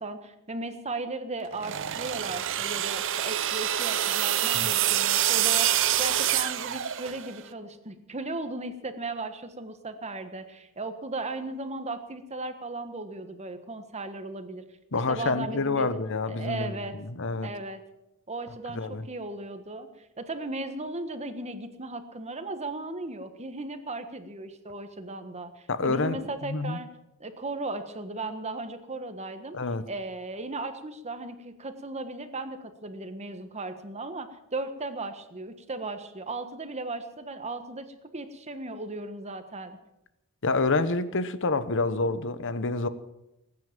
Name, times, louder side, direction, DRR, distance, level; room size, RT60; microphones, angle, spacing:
voice 1, 0.0-14.6 15.1-16.0 16.3-16.9 17.4-17.8 18.3-26.9 27.2-29.6 29.9-37.9 38.1-39.8, right 2 dB, 30° right, 1.5 m, -36 dB
sound 1, 1.5-7.4, right 11 dB, 60° right, 0.8 m, -26 dB
voice 2, 14.9-17.5 18.8-19.1 25.7-26.8 29.5-29.9 40.4-42.9, left 3 dB, 60° left, 1.1 m, -28 dB
20.0 x 9.7 x 7.4 m
head